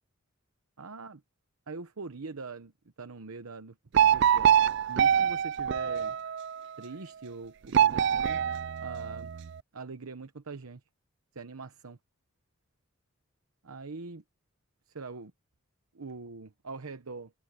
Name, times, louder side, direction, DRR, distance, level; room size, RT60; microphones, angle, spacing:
voice 1, 0.8-1.2 1.7-2.7 3.0-4.6 4.9-6.2 6.8-8.4 8.8-9.3 9.7-10.8 11.3-12.0 13.6-14.2 14.9-15.3 15.9-17.3, right 4 dB, 85° right, 0.9 m, -43 dB
sound 1, 3.9-6.6 7.7-9.5, right 9 dB, 55° right, 0.4 m, -25 dB
open air
head